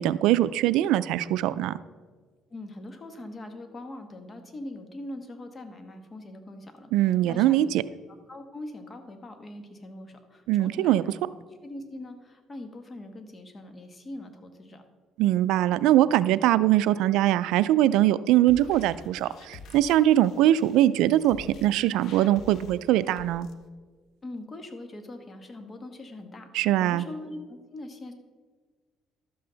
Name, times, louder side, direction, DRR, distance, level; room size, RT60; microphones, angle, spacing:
voice 1, 0.0-1.7 6.9-7.8 10.5-11.0 15.2-23.5 26.5-27.0, right 13 dB, 85° right, 16 dB, 0.3 m, -22 dB
voice 2, 2.5-7.7 8.3-11.2 11.6-14.8 24.2-28.1, left 1 dB, 30° left, 6 dB, 1.3 m, -42 dB
sound 1, 18.4-23.5, left 3 dB, 65° left, 0.8 m, -48 dB
12.0 x 7.7 x 3.9 m, 1.4 s
cardioid pair, 110°, 0 cm